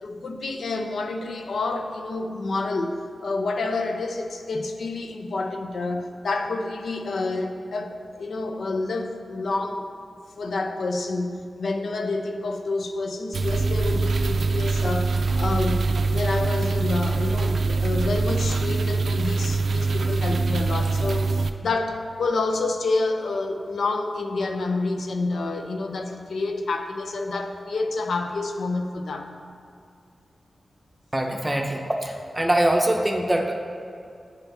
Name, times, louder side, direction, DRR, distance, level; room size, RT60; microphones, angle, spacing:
voice 1, 0.0-2.9 3.2-9.9 10.4-29.4, left 3 dB, 80° left, 5 dB, 0.6 m, -28 dB
sound 1, 13.3-21.5, right 3 dB, 75° right, 0.4 m, -24 dB
voice 2, 31.1-33.6, right 1 dB, 15° right, 2 dB, 0.7 m, -23 dB
9.1 x 5.9 x 3.4 m, 2.4 s
wide cardioid pair, 80°, 0 cm